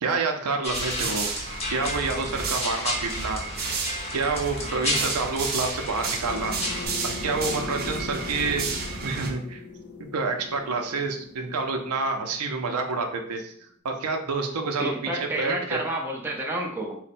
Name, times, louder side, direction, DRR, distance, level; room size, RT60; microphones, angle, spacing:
voice 1, 0.0-3.4 4.1-6.6 7.2-8.7 9.0-9.6 10.0-13.5 13.8-15.8, right 4 dB, 85° right, 4 dB, 0.6 m, -28 dB
sound 1, 0.6-6.9, left 2 dB, 30° left, 0.7 m, -33 dB
sound 2, 0.7-9.3, right 4 dB, 45° right, 0.6 m, -32 dB
sound 3, 6.2-13.4, left 3 dB, 65° left, 0.6 m, -40 dB
voice 2, 14.8-17.0, right 1 dB, 10° right, -1 dB, 0.6 m, -30 dB
4.1 x 2.1 x 4.2 m, 0.63 s
head